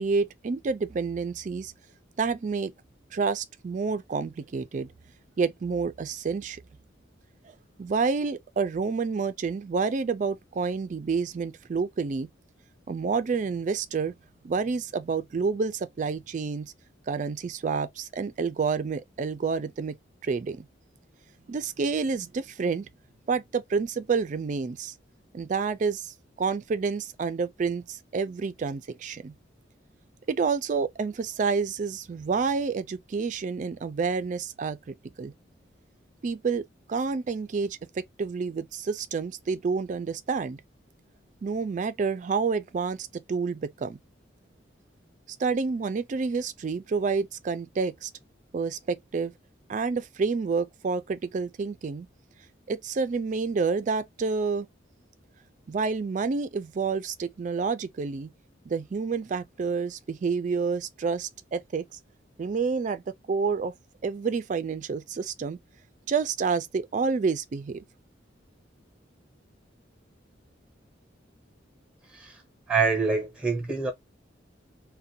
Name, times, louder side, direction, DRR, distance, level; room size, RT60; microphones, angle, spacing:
voice 1, 0.0-1.7 2.2-2.7 3.1-4.9 5.4-6.6 7.8-12.3 12.9-14.1 14.4-16.7 17.1-20.0 20.2-20.7 21.5-22.9 23.3-24.9 25.3-29.3 30.3-35.3 36.2-40.6 41.4-44.0 45.4-48.1 48.5-49.3 49.7-52.1 52.7-54.7 55.7-58.3 58.7-61.9 62.4-63.0 63.3-63.7 64.0-65.6 66.1-67.8, right 5 dB, 40° right, 0.3 m, -29 dB
voice 2, 72.7-73.9, right 4 dB, 5° right, 0.8 m, -25 dB
2.5 x 2.1 x 2.6 m
head